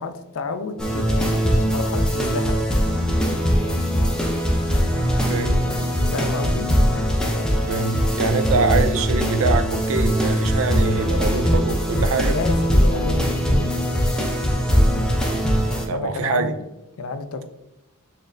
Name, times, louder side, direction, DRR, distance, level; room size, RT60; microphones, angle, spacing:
voice 1, 0.0-2.5 6.1-6.7 12.3-13.8 15.9-16.5 17.0-17.5, left 3 dB, 70° left, 9 dB, 0.4 m, -30 dB
sound 1, 0.8-15.8, equal, 5° left, 0.5 m, -21 dB
voice 2, 5.3-5.6 7.7-12.4 15.9-16.5, right 4 dB, 65° right, 10 dB, 0.4 m, -24 dB
4.1 x 3.2 x 2.5 m, 0.94 s
head